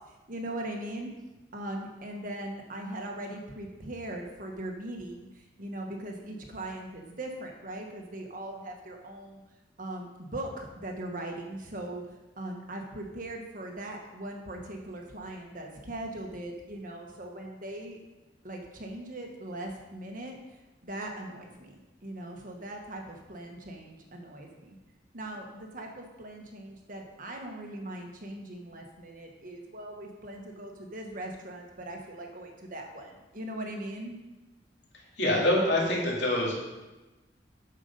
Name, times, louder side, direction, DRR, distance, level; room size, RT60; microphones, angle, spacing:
voice 1, 0.3-1.1 1.5-9.4 9.8-18.0 18.4-24.7 25.1-34.2, right 1 dB, 50° right, 2 dB, 1.4 m, -40 dB
voice 2, 35.2-36.5, left 1 dB, 70° left, -3 dB, 2.7 m, -25 dB
8.3 x 6.5 x 5.4 m, 1.1 s
head